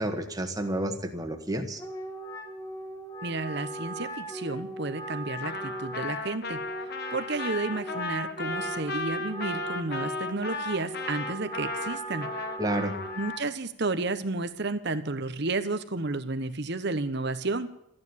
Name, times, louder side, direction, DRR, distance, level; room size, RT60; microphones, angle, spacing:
voice 1, 0.0-1.8 12.6-12.9, right 1 dB, 15° right, 5 dB, 1.6 m, -30 dB
Wind instrument woodwind instrument, 1.8-13.4, right 1 dB, 15° left, 1.4 m, -38 dB
voice 2, 3.2-6.6 7.1-12.3 13.2-17.7, right 3 dB, 50° right, 11 dB, 1.1 m, -32 dB
Trumpet, 5.4-13.4, left 3 dB, 50° left, 1.3 m, -36 dB
14.0 x 9.8 x 9.7 m, 0.80 s
head